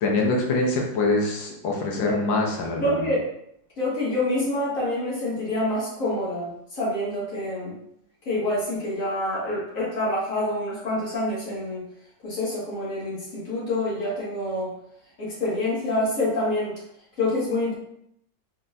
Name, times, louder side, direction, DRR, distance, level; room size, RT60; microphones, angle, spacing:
voice 1, 0.0-3.0, left 2 dB, 85° left, 0 dB, 1.6 m, -24 dB
voice 2, 2.0-2.3 2.8-3.3 3.8-7.8 8.3-11.8 12.2-14.7 15.2-16.7 17.2-17.7, left 1 dB, 45° left, -8 dB, 2.2 m, -27 dB
4.3 x 4.2 x 2.6 m, 0.73 s
omnidirectional pair, 2.0 m